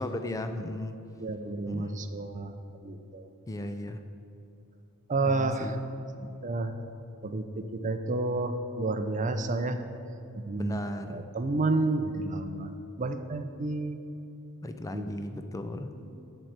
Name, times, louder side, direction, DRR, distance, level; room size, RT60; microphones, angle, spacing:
voice 1, 0.0-1.0 1.7-2.0 3.5-4.0 5.2-5.8 6.2-6.4 10.6-11.2 14.6-15.9, left 1 dB, 15° left, 8 dB, 0.4 m, -36 dB
voice 2, 1.2-3.3 5.1-5.8 6.4-6.7 7.2-9.8 10.3-14.0 14.9-15.1 15.5-15.6 15.9-16.2, right 2 dB, 35° right, 8 dB, 0.6 m, -31 dB
11.0 x 4.5 x 8.0 m, 2.9 s
head